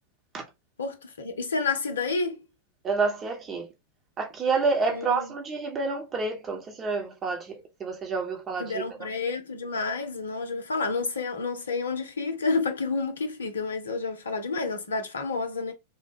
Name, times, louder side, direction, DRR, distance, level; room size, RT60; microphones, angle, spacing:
voice 1, 0.8-2.4 4.9-5.3 8.6-15.7, left 4 dB, 70° left, 0.6 m, -30 dB
voice 2, 2.8-3.7 4.2-9.1, right 4 dB, 25° right, 0.9 m, -29 dB
3.4 x 2.1 x 3.4 m
figure-of-eight pair, 90°, 0 cm